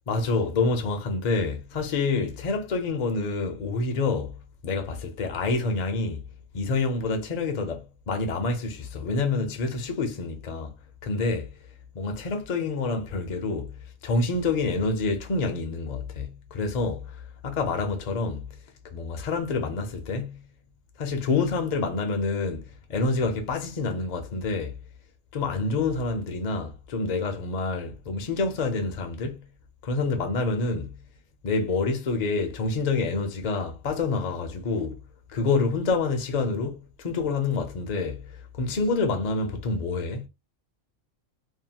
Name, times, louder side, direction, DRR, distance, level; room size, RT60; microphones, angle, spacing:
voice 1, 0.1-6.2 6.5-10.8 11.0-11.5 11.9-13.7 14.0-18.5 18.9-20.4 21.0-24.8 25.3-29.4 29.8-30.9 31.4-35.0 35.3-40.3, left 3 dB, 50° left, 0.5 m, -27 dB
2.7 x 2.2 x 2.7 m
omnidirectional pair, 1.4 m